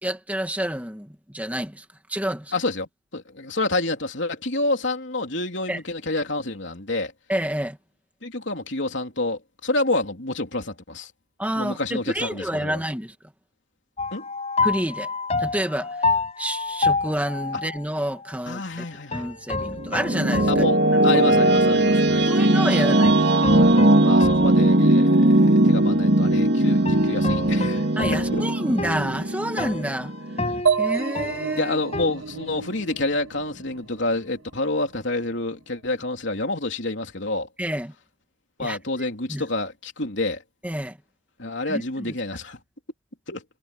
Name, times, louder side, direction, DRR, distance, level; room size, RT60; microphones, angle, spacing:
voice 1, 0.0-2.5 5.7-5.8 7.3-7.8 11.4-13.2 14.6-15.1 15.4-18.8 19.1-20.6 21.0-21.2 22.3-23.3 28.0-30.1 30.8-31.7 37.6-37.9 38.6-38.8 39.3-39.4 40.6-41.0 41.7-42.1, right 1 dB, 5° right, 2.3 m, -29 dB
voice 2, 2.5-7.1 8.2-11.1 11.5-12.8 14.1-14.3 18.5-19.2 20.5-22.3 22.8-22.9 24.0-27.9 28.3-28.4 31.6-37.5 38.6-40.4 41.4-42.6 43.3-43.4, left 2 dB, 60° left, 3.5 m, -28 dB
sound 1, 14.0-17.8 19.1-21.7 22.1-22.2 23.0-25.5 26.9-32.1, left 3 dB, 30° left, 6.7 m, -29 dB
sound 2, 19.5-30.6, right 1 dB, 60° right, 2.3 m, -19 dB
sound 3, 30.7-34.3, right 6 dB, 80° right, 1.8 m, -28 dB
head